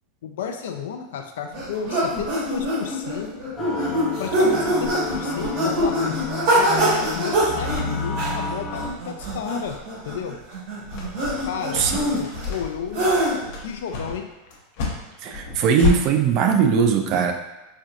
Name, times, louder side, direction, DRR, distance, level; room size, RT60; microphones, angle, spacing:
voice 1, 0.2-3.3 4.2-6.2 6.5-9.8 10.0-10.4 11.5-13.1 13.6-14.3, left 7 dB, 85° left, 5 dB, 0.4 m, -32 dB
sound 1, 1.5-13.6, right 1 dB, 65° right, 1.3 m, -24 dB
sound 2, 3.6-8.9, left 4 dB, 25° left, 0.6 m, -31 dB
sound 3, 10.9-16.0, left 5 dB, 65° left, 0.8 m, -28 dB
voice 2, 15.2-17.3, right 6 dB, 45° right, 5 dB, 0.4 m, -19 dB
4.3 x 2.5 x 2.4 m, 1.0 s
supercardioid pair, 140°, 0 cm